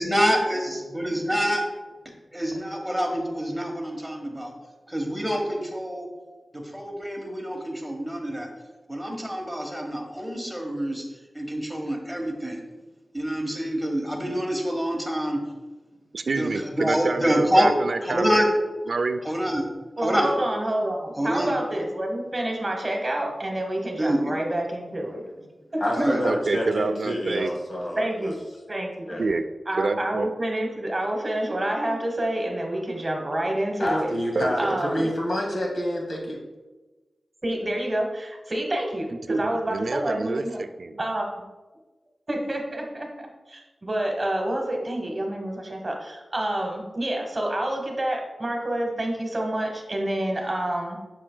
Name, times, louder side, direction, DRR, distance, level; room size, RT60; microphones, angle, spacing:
voice 1, 0.0-1.6 2.3-4.5 4.9-6.1 6.5-8.5 8.9-11.0 11.3-12.6 13.1-15.4 16.4-17.7 18.0-18.5 19.2-19.6 20.0-20.3 21.1-21.5 24.0-24.3 26.0-26.2, equal, ahead, 0 dB, 1.3 m, -26 dB
voice 2, 16.1-18.4 18.9-19.2 26.2-27.5 29.2-29.4 29.8-30.3 34.4-34.8 39.3-41.0, right 3 dB, 65° right, 9 dB, 0.3 m, -27 dB
voice 3, 20.0-25.2 25.7-26.1 28.0-28.4 28.7-29.2 29.7-34.1 34.5-35.1 37.4-40.6 41.0-41.3 42.3-51.0, right 1 dB, 30° right, 2 dB, 1.1 m, -28 dB
voice 4, 25.8-28.3 29.1-29.2 33.8-36.4, equal, 60° left, -2 dB, 1.7 m, -28 dB
7.4 x 6.3 x 2.2 m, 1.2 s
wide cardioid pair, 100°, 0 cm